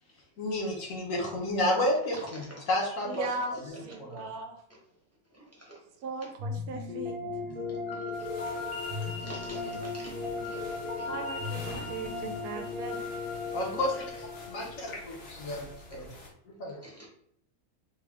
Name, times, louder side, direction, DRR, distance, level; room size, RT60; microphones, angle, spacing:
voice 1, 0.4-3.2 4.0-4.3 13.5-14.0 14.5-16.1 16.6-16.8, left 1 dB, 60° left, -1 dB, 1.2 m, -31 dB
voice 2, 3.0-4.6 6.0-7.2 11.1-13.0 13.7-14.0, right 3 dB, 75° right, 5 dB, 1.0 m, -38 dB
sound 1, 6.4-15.5, left 3 dB, 50° right, 0.8 m, -36 dB
sound 2, 8.1-16.3, left 1 dB, 80° left, 1.7 m, -48 dB
voice 3, 9.2-10.1 10.4-10.6 11.0-11.1 16.8-17.1, right 1 dB, 10° right, -5 dB, 0.8 m, -46 dB
3.5 x 2.3 x 3.4 m, 0.68 s
omnidirectional pair, 1.6 m